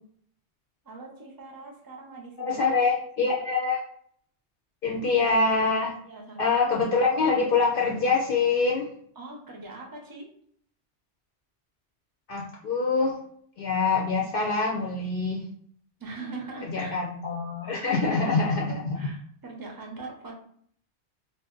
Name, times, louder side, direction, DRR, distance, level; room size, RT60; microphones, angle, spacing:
voice 1, 0.8-2.7 3.2-3.4 5.8-6.5 9.2-10.3 16.0-17.0 17.6-20.3, right 3 dB, 30° right, 0 dB, 0.4 m, -42 dB
voice 2, 2.4-3.8 4.8-5.9 6.4-8.9 12.3-13.2 13.6-15.4 16.7-19.1, left 4 dB, 60° left, -3 dB, 0.6 m, -25 dB
2.6 x 2.0 x 3.6 m, 0.62 s
omnidirectional pair, 1.2 m